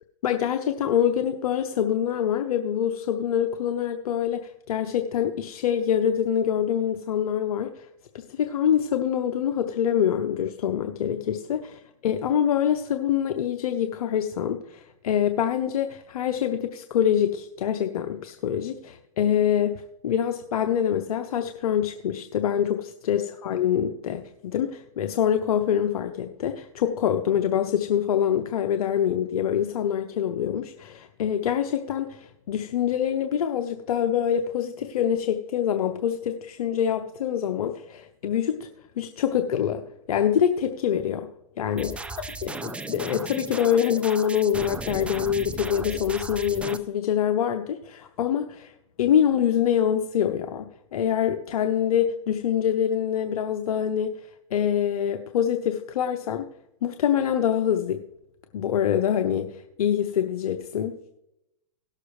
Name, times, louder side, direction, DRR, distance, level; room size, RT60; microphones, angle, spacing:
voice 1, 0.2-7.9 8.1-38.7 39.0-39.8 40.1-41.3 41.6-41.9 42.4-48.7 49.0-50.6 50.9-54.1 54.5-56.4 56.8-58.0 58.5-61.0, left 9 dB, 75° left, 6 dB, 0.7 m, -25 dB
sound 1, 41.8-46.8, right 3 dB, 5° right, 0.4 m, -35 dB
17.5 x 6.7 x 3.2 m, 0.86 s
hypercardioid pair, 120°, 19 cm